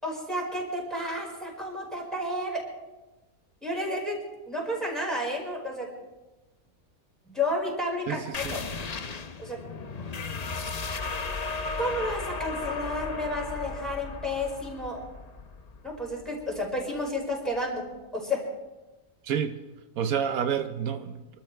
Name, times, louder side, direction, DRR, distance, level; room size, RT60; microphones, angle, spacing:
voice 1, 0.0-2.7 3.6-4.2 4.5-5.9 7.2-8.6 9.4-9.8 11.8-15.0 15.8-17.8 18.1-18.4, left 1 dB, ahead, -3 dB, 4.9 m, -31 dB
voice 2, 8.1-8.6 19.2-19.6 20.0-21.3, right 8 dB, 80° right, 9 dB, 1.2 m, -29 dB
sound 1, 8.3-17.6, left 4 dB, 40° left, 0.6 m, -36 dB
26.5 x 13.0 x 3.3 m, 1.1 s
omnidirectional pair, 1.5 m